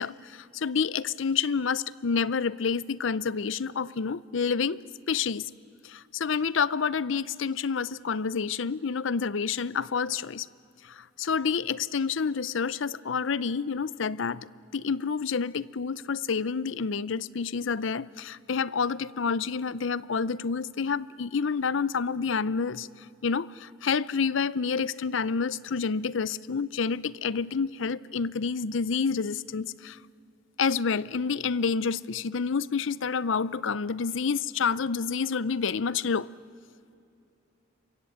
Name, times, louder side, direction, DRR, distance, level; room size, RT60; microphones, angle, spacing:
voice 1, 0.0-5.5 5.8-10.5 10.8-14.5 14.7-30.0 30.6-36.3, left 5 dB, 65° left, 0.6 m, -28 dB
27.5 x 23.5 x 8.5 m
head